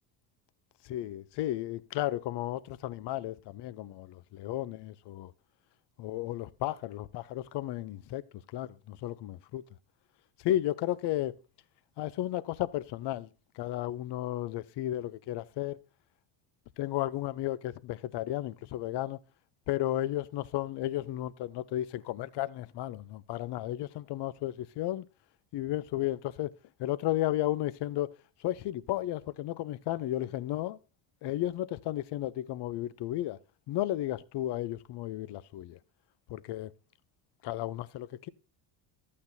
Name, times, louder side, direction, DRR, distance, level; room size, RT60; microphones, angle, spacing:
voice 1, 0.8-5.3 6.0-9.6 10.4-11.4 12.0-13.3 13.5-15.8 16.8-19.2 19.7-25.1 25.5-26.5 26.8-28.1 28.4-30.8 31.2-33.4 33.7-35.8 36.3-36.7 37.4-38.3, left 14 dB, 55° left, 0.7 m, -33 dB
12.0 x 8.6 x 2.7 m
supercardioid pair, 90°, 50 cm